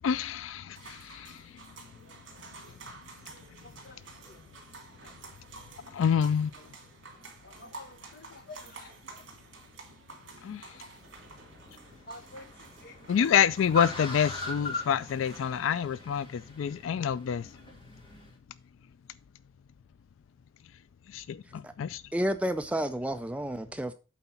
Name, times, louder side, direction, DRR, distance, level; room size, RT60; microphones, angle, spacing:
voice 1, 0.0-1.4 5.9-6.5 10.4-10.6 13.1-17.5 21.1-22.0, left 8 dB, 80° left, 0.3 m, -27 dB
sound 1, 0.7-15.6, right 3 dB, 65° right, 2.9 m, -50 dB
voice 2, 7.4-8.9 12.1-12.5 12.8-13.2, left 2 dB, 50° left, 1.0 m, -48 dB
Car, 10.9-18.3, left 2 dB, 25° left, 2.3 m, -41 dB
voice 3, 22.1-23.9, equal, 5° right, 0.3 m, -30 dB
8.3 x 4.0 x 5.6 m
head